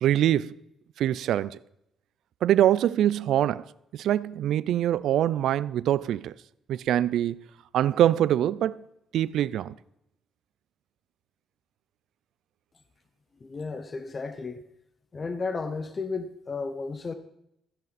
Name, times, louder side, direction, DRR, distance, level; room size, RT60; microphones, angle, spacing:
voice 1, 0.0-0.5 1.0-1.6 2.4-3.7 3.9-6.3 6.7-7.4 7.7-8.8 9.1-9.7, right 11 dB, 80° right, 0.4 m, -24 dB
voice 2, 13.4-14.6 15.1-17.1, left 4 dB, 35° left, 0.9 m, -33 dB
15.0 x 10.5 x 4.2 m
cardioid pair, 90°, 0 cm